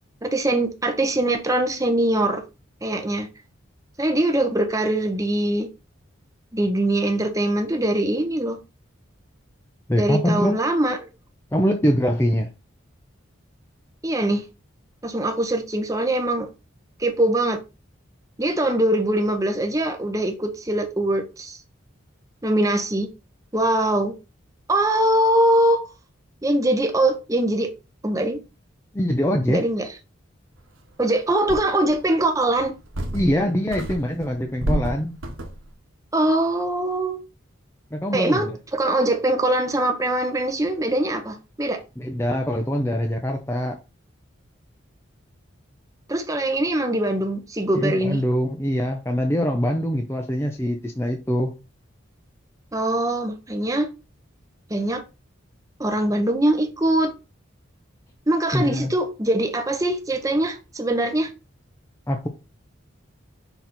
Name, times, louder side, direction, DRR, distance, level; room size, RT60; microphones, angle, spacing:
voice 1, 0.2-2.4 2.8-3.3 4.0-5.7 6.5-8.6 10.0-11.1 14.0-14.4 15.0-16.5 17.0-17.6 18.4-21.6 22.4-23.1 23.5-24.1 24.7-25.9 26.4-27.7 28.0-28.4 29.5-29.9 31.0-32.7 36.1-37.2 38.1-41.8 46.1-48.2 52.7-53.9 54.7-55.0 55.8-57.1 58.3-61.3, right 1 dB, 15° right, 0.9 m, -22 dB
voice 2, 9.9-10.6 11.5-12.5 28.9-29.6 33.1-35.2 37.9-38.6 42.0-43.8 47.7-51.5 58.5-58.9 62.1-62.3, equal, 10° left, 0.6 m, -23 dB
sound 1, 30.8-30.9 31.5-32.0 32.6-33.4 33.7-35.7, right 1 dB, 75° right, 1.3 m, -29 dB
6.0 x 4.1 x 4.2 m
head